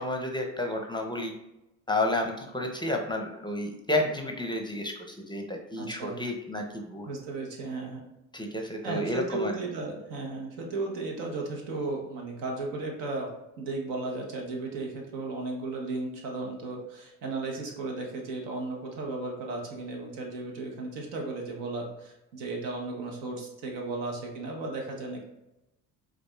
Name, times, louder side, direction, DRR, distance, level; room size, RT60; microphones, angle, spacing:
voice 1, 0.0-1.3 1.9-7.1 8.3-9.5, left 1 dB, 10° left, 2 dB, 0.5 m, -31 dB
voice 2, 5.8-6.2 7.1-8.0 8.8-25.2, right 3 dB, 75° right, 1 dB, 1.0 m, -35 dB
4.7 x 2.4 x 2.3 m, 0.93 s
hypercardioid pair, 60°, 43 cm